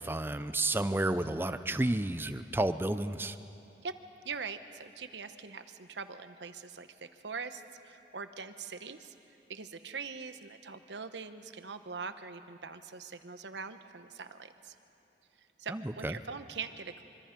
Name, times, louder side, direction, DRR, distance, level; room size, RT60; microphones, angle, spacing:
voice 1, 0.0-3.4 15.7-16.1, right 1 dB, 10° right, 11 dB, 0.5 m, -31 dB
voice 2, 4.2-9.1 9.5-14.7 15.6-17.0, right 5 dB, 80° right, 10 dB, 1.0 m, -42 dB
25.5 x 25.0 x 5.2 m, 3.0 s
head